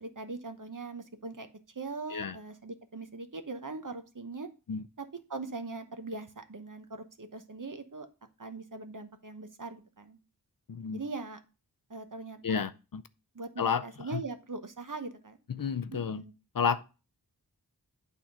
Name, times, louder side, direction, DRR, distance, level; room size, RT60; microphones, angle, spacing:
voice 1, 0.0-4.5 5.0-8.1 8.4-10.2 10.9-11.4 11.9-12.6 13.3-15.4 15.9-16.3, right 3 dB, 50° right, 1.0 m, -41 dB
voice 2, 10.7-11.0 12.4-13.0 13.6-13.8 14.1-14.2 15.5-16.2 16.5-16.8, left 6 dB, 60° left, 0.6 m, -31 dB
9.0 x 3.6 x 5.6 m
wide cardioid pair, 45°, 39 cm